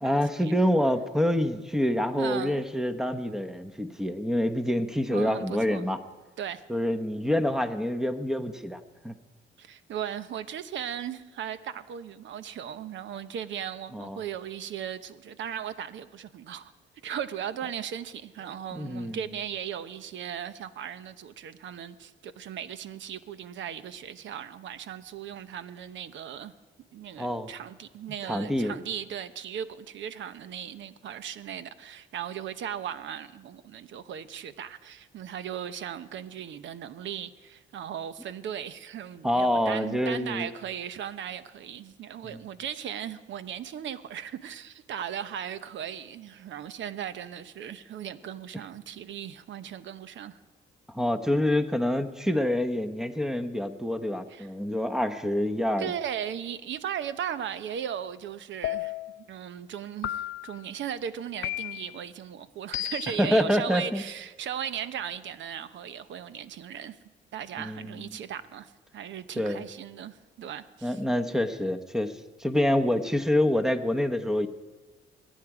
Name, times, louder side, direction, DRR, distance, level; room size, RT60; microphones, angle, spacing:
voice 1, 0.0-6.0 6.7-9.1 13.9-14.2 18.7-19.2 27.2-27.5 28.3-28.7 39.2-40.5 42.2-42.4 50.9-55.9 63.2-64.0 67.6-68.0 69.4-69.7 70.8-74.5, left 1 dB, ahead, 1.0 m, -27 dB
voice 2, 2.2-2.6 5.1-5.9 6.4-6.6 9.6-16.7 17.0-26.5 26.9-50.4 54.3-54.5 55.8-67.0 67.3-71.0, right 9 dB, 70° right, 0.9 m, -37 dB
sound 1, 58.6-59.2 60.0-60.6 61.4-62.0 62.7-63.3, left 14 dB, 75° left, 0.5 m, -33 dB
22.5 x 9.3 x 4.9 m
cardioid pair, 90°, 20 cm